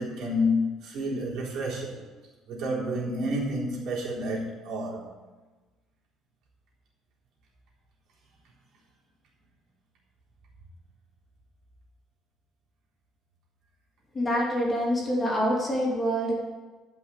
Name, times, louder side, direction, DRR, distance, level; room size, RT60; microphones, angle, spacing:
voice 1, 0.0-2.1 2.5-5.1, left 1 dB, 60° right, -5 dB, 4.0 m, -29 dB
voice 2, 14.1-16.3, equal, 20° left, -3 dB, 2.9 m, -26 dB
12.5 x 5.8 x 8.9 m, 1.3 s
cardioid pair, 165°, 0 cm